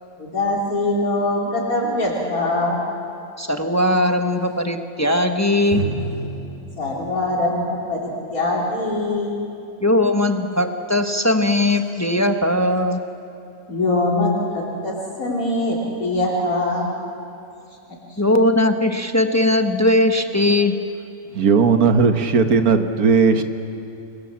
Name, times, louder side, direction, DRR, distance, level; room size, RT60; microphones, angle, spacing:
voice 1, 0.2-2.8 6.8-9.4 13.7-16.9, left 2 dB, 80° left, -3 dB, 3.9 m, -22 dB
voice 2, 3.4-5.8 9.8-13.0 18.2-20.8, left 1 dB, 15° left, 5 dB, 0.9 m, -19 dB
Drum, 5.7-9.2, right 2 dB, 35° right, 4.7 m, -32 dB
voice 3, 21.3-23.4, right 5 dB, 85° right, 7 dB, 1.8 m, -16 dB
27.5 x 22.0 x 7.5 m, 2.6 s
omnidirectional pair, 1.5 m